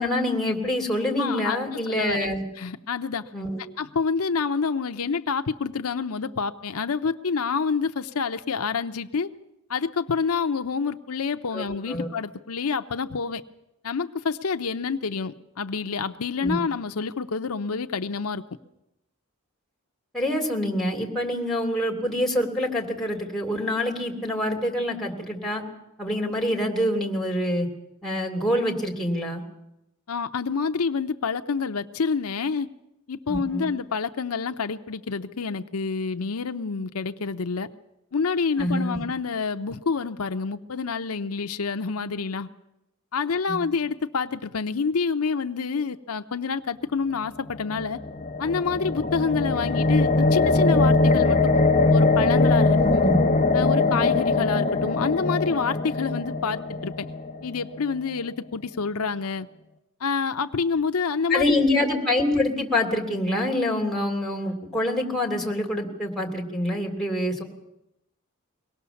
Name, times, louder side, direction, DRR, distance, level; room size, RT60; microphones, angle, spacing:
voice 1, 0.0-2.4 3.3-3.6 11.5-12.1 16.4-16.6 20.1-25.6 26.0-27.7 28.0-29.4 33.3-33.7 38.6-39.0 43.5-43.6 52.7-53.2 61.3-67.4, left 1 dB, ahead, 1 dB, 2.8 m, -26 dB
voice 2, 1.2-1.6 1.9-2.3 2.6-3.2 3.8-9.3 9.7-13.4 13.8-18.4 30.1-32.7 33.1-37.7 38.1-42.5 43.1-48.0 48.4-51.5 51.9-53.1 53.5-57.1 57.4-59.5 60.0-61.6, left 5 dB, 80° left, 9 dB, 0.7 m, -27 dB
sound 1, 47.6-57.8, left 3 dB, 30° left, 1.1 m, -21 dB
23.5 x 18.0 x 7.0 m, 0.89 s
head